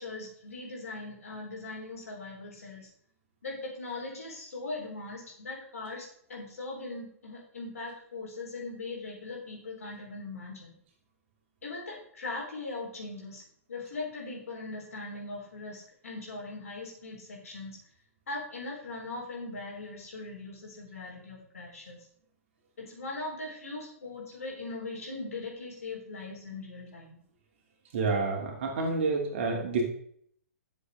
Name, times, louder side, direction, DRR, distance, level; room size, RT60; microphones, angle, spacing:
voice 1, 0.0-2.9 3.4-10.7 11.6-13.4 13.7-17.8 18.3-22.0 22.8-27.2, left 3 dB, 65° left, -2 dB, 4.1 m, -40 dB
voice 2, 27.9-29.8, right 3 dB, 50° right, 0 dB, 2.8 m, -28 dB
11.5 x 7.3 x 3.6 m, 0.65 s
figure-of-eight pair, 115°, 8 cm